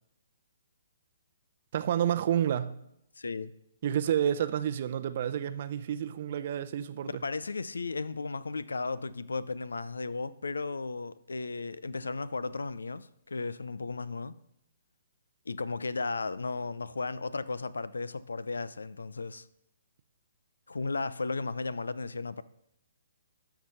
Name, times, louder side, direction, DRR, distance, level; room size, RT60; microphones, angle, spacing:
voice 1, 1.7-2.8 3.8-7.2, right 10 dB, 50° right, 0.6 m, -29 dB
voice 2, 3.2-3.5 7.0-14.4 15.5-19.5 20.7-22.4, left 3 dB, 80° left, 0.5 m, -35 dB
13.0 x 4.7 x 5.5 m
figure-of-eight pair, 130°, 0 cm